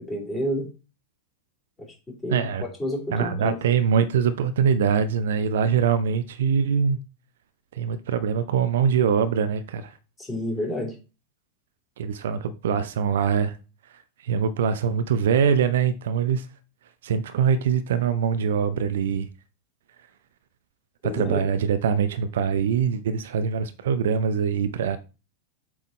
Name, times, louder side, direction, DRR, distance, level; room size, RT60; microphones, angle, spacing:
voice 1, 0.1-0.7 2.2-3.6 10.2-10.9 21.0-21.4, equal, 15° left, 3.0 m, -29 dB
voice 2, 2.3-2.6 3.1-7.0 7.7-9.9 12.0-13.6 14.2-16.5 17.0-19.3 21.0-25.0, right 7 dB, 60° right, 0.5 m, -23 dB
7.7 x 3.6 x 4.0 m
figure-of-eight pair, 90°, 0 cm